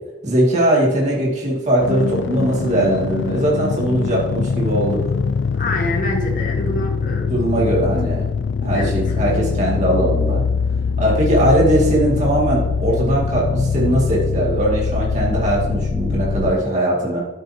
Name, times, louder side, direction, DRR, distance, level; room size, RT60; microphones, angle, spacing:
voice 1, 0.2-5.0 7.3-8.2 8.6-10.4 11.0-17.2, right 1 dB, 40° right, -4 dB, 2.3 m, -19 dB
sound 1, 1.8-16.5, left 5 dB, 70° left, 0.3 m, -22 dB
voice 2, 5.6-7.7 8.7-9.0, left 1 dB, 45° left, 1 dB, 1.5 m, -26 dB
10.5 x 8.7 x 2.8 m, 1.1 s
head